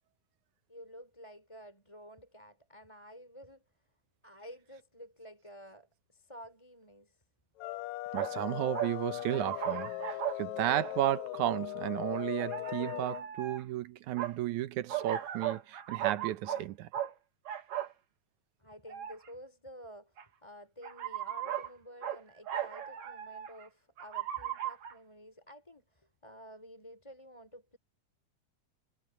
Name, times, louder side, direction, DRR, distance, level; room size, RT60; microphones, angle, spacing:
voice 1, 0.7-3.6 4.2-7.2 18.6-27.8, equal, 10° left, 4.8 m, -51 dB
sound 1, 7.6-13.2, left 18 dB, 80° left, 1.8 m, -39 dB
sound 2, 8.1-8.4 8.7-10.4 10.9-11.0 12.2-13.6 14.2-14.3 14.9-16.7 16.9-17.1 17.5-17.9 18.9-19.3 20.2-20.3 20.8-21.7 22.0-22.2 22.5-23.6 24.0-24.9, right 11 dB, 65° right, 3.2 m, -37 dB
voice 2, 8.1-16.9, right 13 dB, 80° right, 2.4 m, -33 dB
omnidirectional pair, 3.4 m